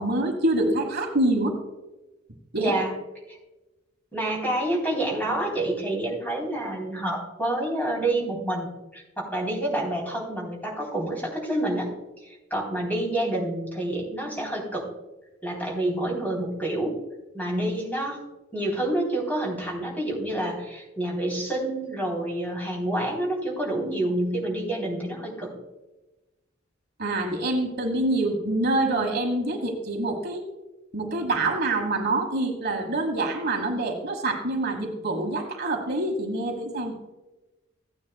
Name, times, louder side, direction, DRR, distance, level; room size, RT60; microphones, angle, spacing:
voice 1, 0.0-1.5 2.5-2.7 27.0-30.4 30.9-37.0, right 2 dB, 55° right, 4 dB, 1.4 m, -26 dB
voice 2, 2.6-2.9 3.3-3.4 4.1-8.7 8.9-11.9 12.2-14.9 15.4-17.0 17.3-18.2 18.5-25.5, right 1 dB, 10° left, -2 dB, 3.4 m, -28 dB
15.5 x 9.4 x 2.3 m, 1.1 s
head